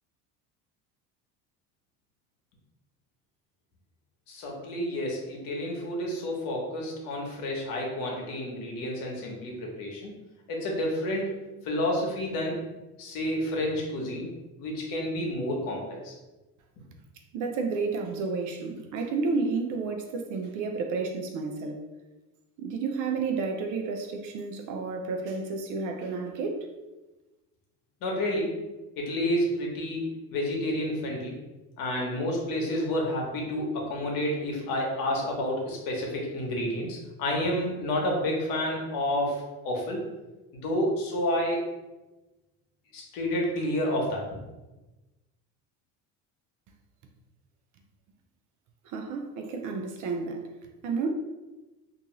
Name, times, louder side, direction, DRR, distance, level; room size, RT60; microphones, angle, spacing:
voice 1, 4.3-10.1 10.5-11.3 11.6-12.6 13.0-14.3 14.6-16.1 28.0-28.5 29.0-31.4 31.8-40.0 40.5-41.6 42.9-44.4, left 1 dB, 65° left, -1 dB, 1.0 m, -30 dB
voice 2, 17.3-21.9 22.6-26.7 48.8-50.4 50.8-51.1, right 4 dB, 55° right, 4 dB, 0.5 m, -31 dB
2.6 x 2.3 x 3.0 m, 1.1 s
supercardioid pair, 100°, 36 cm